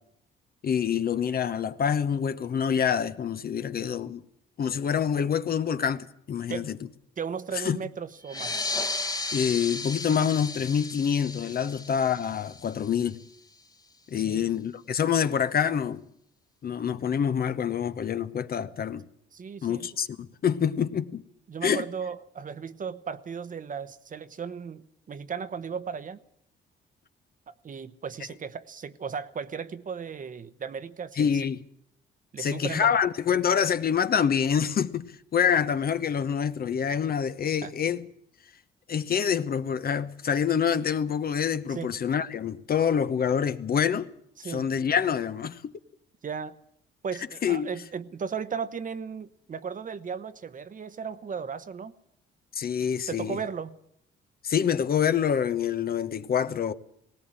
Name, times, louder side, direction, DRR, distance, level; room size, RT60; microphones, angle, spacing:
voice 1, 0.6-4.2 4.6-6.8 7.5-7.8 9.3-13.2 14.1-16.0 16.6-19.0 19.6-21.2 21.6-21.8 31.2-31.6 32.4-38.1 38.9-44.1 44.4-45.7 47.4-47.7 52.5-53.4 54.4-56.7, left 7 dB, 50° left, 1.0 m, -26 dB
voice 2, 7.2-8.7 11.6-11.7 14.1-14.5 19.3-19.9 21.5-26.2 27.5-31.3 32.3-32.9 37.6-37.7 41.7-41.9 44.4-44.7 46.2-46.6 47.0-51.9 53.1-53.8, right 6 dB, 40° right, 1.0 m, -36 dB
sound 1, 8.2-13.3, left 3 dB, 20° left, 1.3 m, -34 dB
18.5 x 17.5 x 9.0 m
cardioid pair, 90°, 20 cm